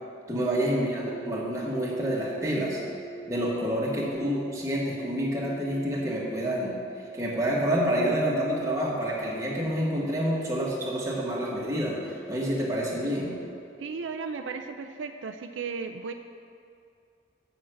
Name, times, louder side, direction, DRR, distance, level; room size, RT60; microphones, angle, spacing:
voice 1, 0.3-2.8 3.3-6.7 7.1-13.3, equal, 15° right, -4 dB, 1.5 m, -28 dB
sound 1, 0.8-14.7, right 3 dB, 25° left, 1.0 m, -45 dB
voice 2, 13.8-16.1, right 5 dB, 75° right, 6 dB, 0.4 m, -35 dB
7.1 x 6.3 x 7.8 m, 2.4 s
head